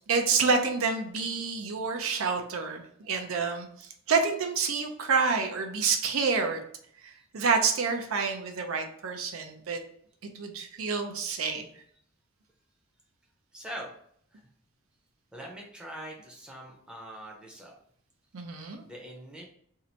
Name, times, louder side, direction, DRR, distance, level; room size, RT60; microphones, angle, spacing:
voice 1, 0.1-6.6 7.0-9.8 10.3-11.7 18.3-18.8, right 5 dB, 75° right, 5 dB, 0.5 m, -28 dB
voice 2, 13.5-13.9 14.3-14.4 15.3-17.7 18.8-19.4, right 1 dB, 5° right, -2 dB, 0.7 m, -42 dB
2.7 x 2.5 x 4.3 m, 0.64 s
head